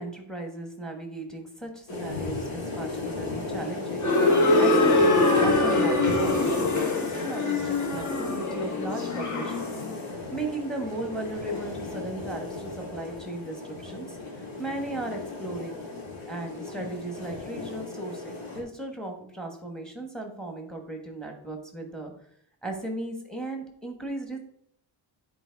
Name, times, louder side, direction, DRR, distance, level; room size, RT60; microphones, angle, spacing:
voice 1, 0.0-9.7 10.1-15.8 16.3-22.1 22.6-24.4, right 2 dB, ahead, 3 dB, 1.3 m, -36 dB
sound 1, 1.9-18.6, left 3 dB, 70° left, 3.0 m, -36 dB
sound 2, 4.0-9.9, left 2 dB, 35° left, 1.2 m, -23 dB
9.3 x 4.6 x 4.6 m, 0.67 s
wide cardioid pair, 175°, 48 cm